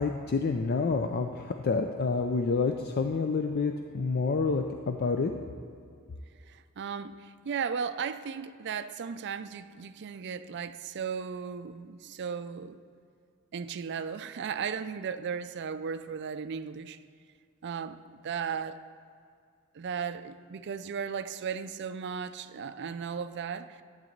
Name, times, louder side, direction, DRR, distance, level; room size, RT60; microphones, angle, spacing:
voice 1, 0.0-5.3, left 4 dB, 45° left, 5 dB, 0.4 m, -28 dB
voice 2, 6.5-12.8 13.5-17.0 17.6-18.8 19.7-23.8, right 6 dB, 55° right, 12 dB, 0.4 m, -36 dB
12.0 x 4.0 x 7.9 m, 2.3 s
head